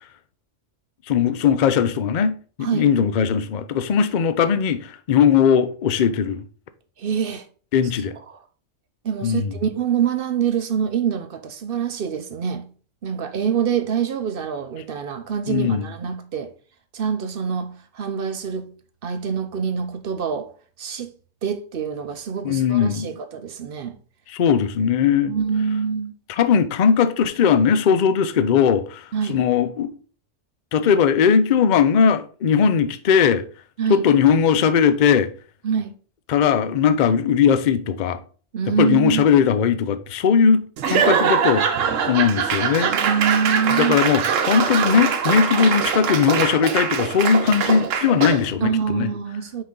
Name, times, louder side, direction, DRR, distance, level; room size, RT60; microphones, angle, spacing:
voice 1, 1.1-6.4 7.7-8.2 9.2-9.5 15.5-15.8 22.4-23.2 24.3-25.3 26.3-29.9 30.7-33.4 33.9-35.3 36.3-38.2 38.8-41.8 42.1-42.9 43.8-49.1, left 7 dB, 50° left, 0.6 m, -19 dB
voice 2, 2.6-2.9 7.0-7.5 8.3-8.4 9.0-12.6 13.0-16.5 16.9-18.7 19.0-20.5 20.8-21.1 21.4-24.0 25.3-26.1 29.1-29.4 33.8-34.1 35.6-35.9 38.5-39.3 42.9-44.0 48.6-49.6, right 7 dB, 55° right, 0.7 m, -25 dB
Laughter / Applause / Crowd, 40.8-48.5, right 7 dB, 75° right, 1.1 m, -22 dB
6.1 x 5.1 x 3.8 m
omnidirectional pair, 1.3 m